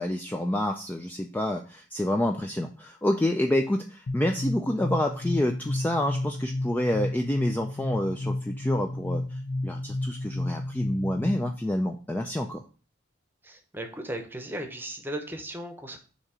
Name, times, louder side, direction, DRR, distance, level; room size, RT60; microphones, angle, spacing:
voice 1, 0.0-12.6, left 1 dB, 10° left, 4 dB, 0.3 m, -28 dB
sound 1, 4.1-11.6, left 1 dB, 55° left, 0.8 m, -32 dB
voice 2, 13.4-16.0, right 1 dB, 10° right, 5 dB, 0.8 m, -36 dB
7.1 x 2.9 x 4.8 m, 0.38 s
head